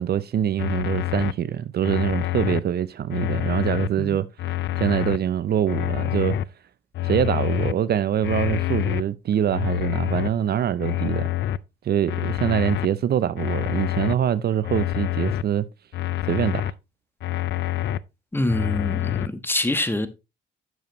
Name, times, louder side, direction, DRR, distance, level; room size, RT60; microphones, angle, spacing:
voice 1, 0.0-6.4 7.0-11.3 11.8-15.7 16.3-16.7, right 10 dB, 55° right, 0.6 m, -24 dB
sound 1, 0.6-1.3 1.8-2.6 3.1-3.9 4.4-5.2 5.7-6.4 6.9-7.7 8.2-9.0 9.5-10.3 10.8-11.6 12.1-12.9 13.4-14.1 14.6-15.4 15.9-16.7 17.2-18.0 18.5-19.3, left 14 dB, 65° left, 0.5 m, -26 dB
voice 2, 18.3-20.1, left 1 dB, 10° left, 1.2 m, -25 dB
9.3 x 7.0 x 3.0 m
cardioid pair, 90°, 20 cm